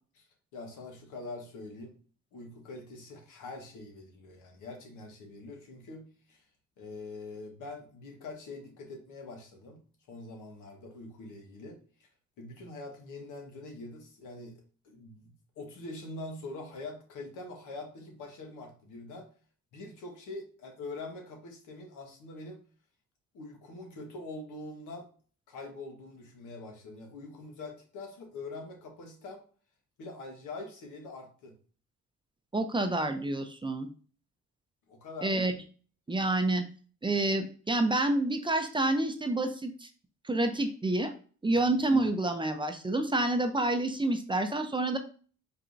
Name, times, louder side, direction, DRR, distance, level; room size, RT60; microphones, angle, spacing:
voice 1, 0.5-1.9 2.3-6.4 6.8-9.8 10.1-12.1 12.4-15.3 15.6-19.3 19.7-22.6 23.3-25.1 25.5-29.4 30.0-31.5 34.9-35.4 41.5-41.6, left 2 dB, 85° left, 2 dB, 1.3 m, -44 dB
voice 2, 32.5-33.9 35.2-35.5 36.1-36.6 37.0-39.9 40.2-41.1 41.4-45.0, right 2 dB, 15° right, 7 dB, 0.5 m, -28 dB
4.4 x 3.6 x 2.6 m, 0.40 s
cardioid pair, 90°, 30 cm